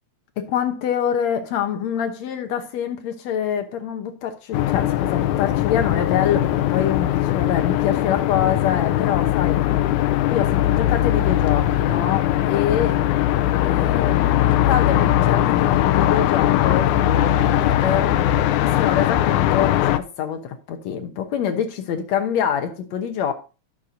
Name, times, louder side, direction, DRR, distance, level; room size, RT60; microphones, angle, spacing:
voice 1, 0.4-9.6 10.3-13.0 13.6-18.2 18.6-23.3, left 8 dB, 70° left, 2.2 m, -26 dB
sound 1, 4.5-20.0, left 12 dB, 85° left, 2.1 m, -20 dB
14.0 x 6.7 x 2.7 m
omnidirectional pair, 3.4 m